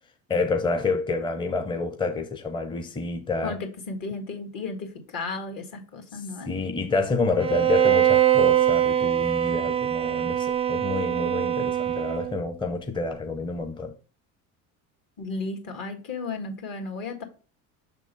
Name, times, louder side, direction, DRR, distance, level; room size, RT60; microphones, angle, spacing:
voice 1, 0.3-3.6 6.1-6.2 6.5-13.9, left 3 dB, 10° left, 0.7 m, -28 dB
voice 2, 3.4-6.5 15.2-17.2, left 3 dB, 50° left, 1.9 m, -34 dB
Bowed string instrument, 7.4-12.5, right 11 dB, 15° right, 0.3 m, -23 dB
6.0 x 3.7 x 5.3 m
hypercardioid pair, 80°, 42 cm